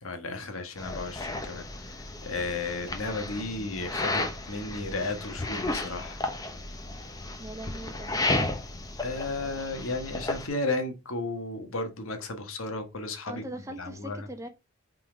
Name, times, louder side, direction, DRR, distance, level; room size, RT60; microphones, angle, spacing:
voice 1, 0.0-6.2 9.0-13.4 13.8-14.2, left 2 dB, 70° left, 1.3 m, -34 dB
sound 1, 0.8-10.5, left 2 dB, 15° left, 0.9 m, -33 dB
voice 2, 7.4-8.6 13.3-14.5, right 1 dB, 15° right, 0.8 m, -41 dB
5.6 x 3.9 x 5.0 m
head